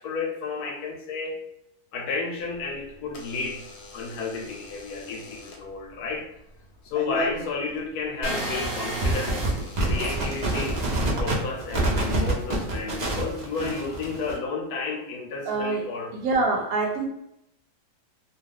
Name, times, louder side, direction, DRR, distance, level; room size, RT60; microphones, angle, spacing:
voice 1, 0.0-1.5 1.9-3.6 3.9-6.3 6.8-9.4 9.8-10.8 11.1-16.1, left 4 dB, 80° left, 2 dB, 1.1 m, -32 dB
Door / Alarm, 2.4-11.6, left 2 dB, 65° left, 0.7 m, -40 dB
sound 1, 8.2-14.4, right 2 dB, 45° right, 0.6 m, -27 dB
voice 2, 15.4-15.9 16.1-17.1, right 3 dB, 75° right, 2 dB, 1.1 m, -25 dB
2.7 x 2.3 x 3.4 m, 0.80 s
omnidirectional pair, 1.6 m